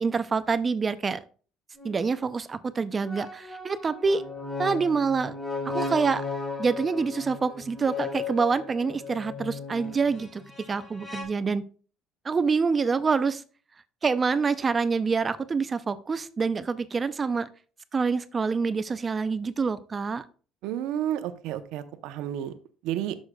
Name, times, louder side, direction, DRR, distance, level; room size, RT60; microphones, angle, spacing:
voice 1, 0.0-1.2 1.8-4.2 4.6-5.3 5.7-6.2 6.6-10.4 10.7-11.6 12.2-13.4 14.0-17.5 17.9-20.3, right 5 dB, 25° right, 13 dB, 0.4 m, -26 dB
sound 1, 1.7-2.0 3.0-11.2, left 4 dB, 15° left, 3.8 m, -36 dB
voice 2, 20.6-22.5 22.8-23.2, right 11 dB, 80° right, 11 dB, 0.7 m, -31 dB
11.0 x 6.4 x 2.2 m, 0.40 s
cardioid pair, 135°, 0 cm